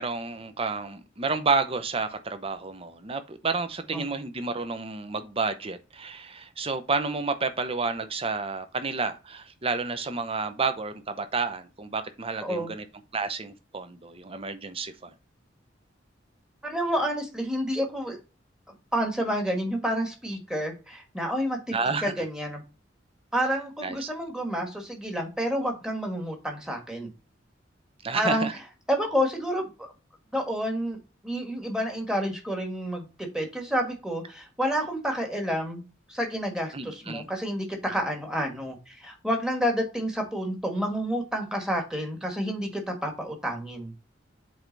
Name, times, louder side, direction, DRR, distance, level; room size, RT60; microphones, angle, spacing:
voice 1, 0.0-12.8 13.1-15.1 21.7-22.1 23.8-24.1 28.0-28.5 36.7-37.2, right 4 dB, 30° right, 0.7 m, -30 dB
voice 2, 12.4-12.7 16.6-18.2 18.9-21.8 22.0-22.6 23.3-27.1 28.1-28.5 28.9-29.9 30.3-31.0 31.2-35.8 36.1-43.9, equal, 5° right, 1.5 m, -29 dB
7.8 x 3.4 x 3.9 m
head